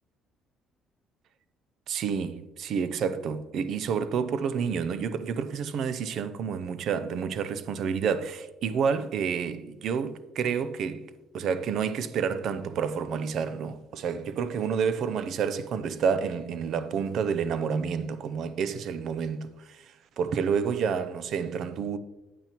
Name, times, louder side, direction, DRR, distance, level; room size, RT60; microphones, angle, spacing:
voice 1, 1.9-22.0, right 6 dB, 60° right, 0.5 m, -29 dB
8.8 x 8.6 x 3.0 m
cardioid pair, 130°, 0 cm